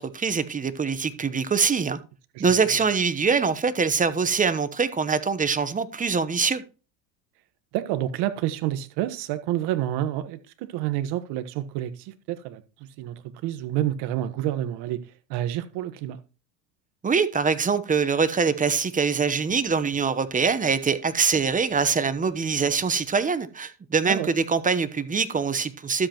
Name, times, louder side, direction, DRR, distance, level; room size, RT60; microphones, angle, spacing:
voice 1, 0.0-2.0 2.4-6.6 17.0-26.1, right 5 dB, 15° right, 1.0 m, -24 dB
voice 2, 7.7-12.6 13.0-13.1 13.4-15.0 15.3-16.2 24.1-24.3, right 13 dB, 60° right, 1.5 m, -28 dB
12.5 x 8.1 x 3.0 m
supercardioid pair, 105°, 46 cm